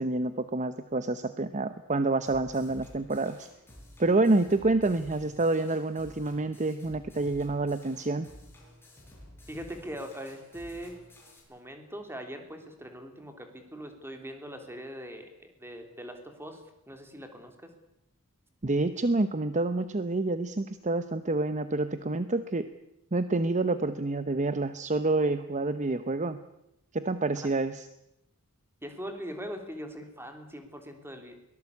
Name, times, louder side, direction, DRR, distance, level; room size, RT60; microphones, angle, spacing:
voice 1, 0.0-3.5 4.0-8.3 18.6-22.7 23.1-26.4 26.9-27.9, right 2 dB, 35° right, 12 dB, 0.8 m, -28 dB
sound 1, 2.3-11.4, equal, 10° left, 6.6 m, -52 dB
voice 2, 9.5-11.0 11.5-17.7 28.8-31.3, equal, 10° right, 5 dB, 3.2 m, -41 dB
23.0 x 18.0 x 8.4 m, 0.84 s
head